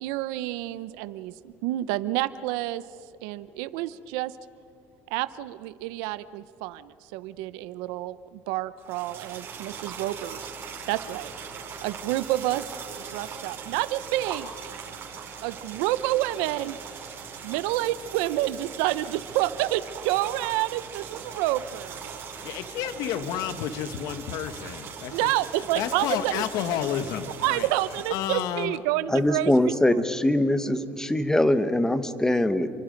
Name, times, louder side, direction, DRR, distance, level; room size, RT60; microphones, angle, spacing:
voice 1, 0.0-2.8 3.2-4.3 5.1-10.5 10.9-11.3 11.8-12.7 13.1-14.5 15.4-16.8 17.4-22.1 25.1-26.4 27.4-30.0, right 15 dB, 85° right, 15 dB, 0.8 m, -29 dB
sound 1, 8.8-28.1, right 6 dB, 40° right, 6.2 m, -40 dB
voice 2, 22.4-27.7 28.1-28.8, left 9 dB, 70° left, 10 dB, 1.5 m, -31 dB
voice 3, 29.1-32.7, left 1 dB, 10° left, 11 dB, 1.3 m, -22 dB
30.0 x 24.0 x 5.3 m, 2.5 s
cardioid pair, 115°, 6 cm